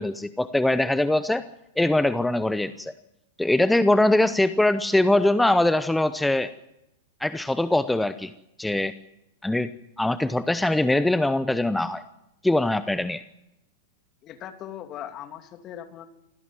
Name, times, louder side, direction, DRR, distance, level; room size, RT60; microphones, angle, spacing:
voice 1, 0.0-1.4 1.8-2.9 3.4-6.5 7.2-8.3 8.6-8.9 9.4-9.7 10.0-12.0 12.4-13.2, left 1 dB, 5° left, 13 dB, 0.8 m, -22 dB
voice 2, 14.2-16.1, left 10 dB, 35° left, 7 dB, 2.7 m, -39 dB
25.0 x 17.0 x 7.7 m, 0.87 s
figure-of-eight pair, 100°, 0 cm